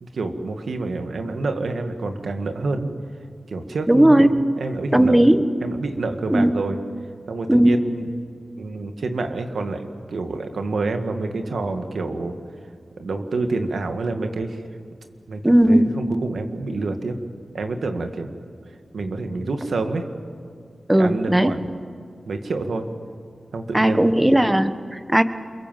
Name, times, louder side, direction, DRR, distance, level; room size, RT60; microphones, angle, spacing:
voice 1, 0.0-2.9 3.5-5.2 5.6-6.8 7.3-8.1 8.6-12.4 13.0-14.6 15.3-15.4 15.7-17.2 17.5-18.3 18.9-20.1 20.9-21.7 22.3-22.9 23.5-24.2, right 3 dB, 85° right, 6 dB, 1.9 m, -27 dB
voice 2, 3.9-4.4 4.9-5.5 6.3-6.6 7.5-7.8 15.4-16.2 20.9-21.6 23.7-25.2, right 1 dB, 15° right, 10 dB, 1.3 m, -17 dB
28.5 x 23.0 x 7.6 m, 2.1 s
cardioid pair, 55°, 0 cm